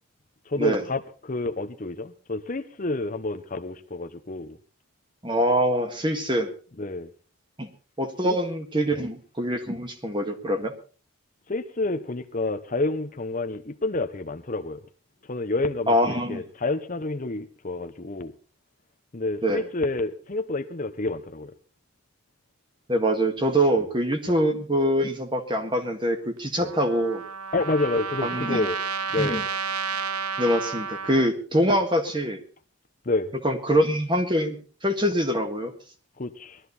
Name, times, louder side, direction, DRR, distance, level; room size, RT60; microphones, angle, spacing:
voice 1, 0.5-4.6 6.8-7.1 8.2-8.4 8.9-9.1 11.5-14.8 15.3-18.3 19.1-21.5 24.3-24.4 26.6-26.7 27.5-28.8 29.1-29.4 33.0-33.3 36.2-36.6, left 2 dB, 35° left, 9 dB, 0.8 m, -29 dB
voice 2, 5.2-6.5 7.6-7.7 8.0-10.7 15.9-16.4 19.4-19.6 22.9-27.2 28.2-28.7 29.2-29.4 30.4-32.4 33.4-35.7, equal, 20° right, 6 dB, 1.7 m, -24 dB
Trumpet, 26.6-31.3, right 5 dB, 90° right, 0.8 m, -31 dB
19.5 x 13.0 x 4.1 m, 0.38 s
head